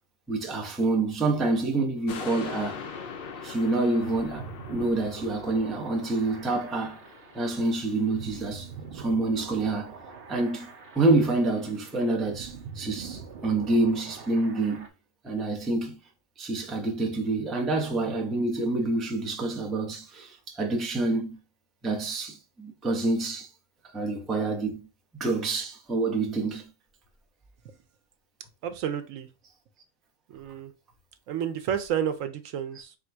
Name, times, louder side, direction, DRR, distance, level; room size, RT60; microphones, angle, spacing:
voice 1, 0.3-2.8 3.4-7.0 7.3-9.9 10.3-14.9 15.2-16.0 16.4-21.4 21.8-23.5 23.9-24.9 25.2-26.7, right 2 dB, ahead, 0.4 m, -27 dB
sound 1, 2.1-8.7 9.2-9.3, left 5 dB, 55° left, 0.7 m, -42 dB
sound 2, 3.5-14.9, right 5 dB, 50° right, 0.9 m, -44 dB
voice 2, 28.6-29.3 30.3-30.7 31.3-33.0, right 9 dB, 80° right, 1.0 m, -31 dB
3.6 x 2.5 x 4.4 m
omnidirectional pair, 1.4 m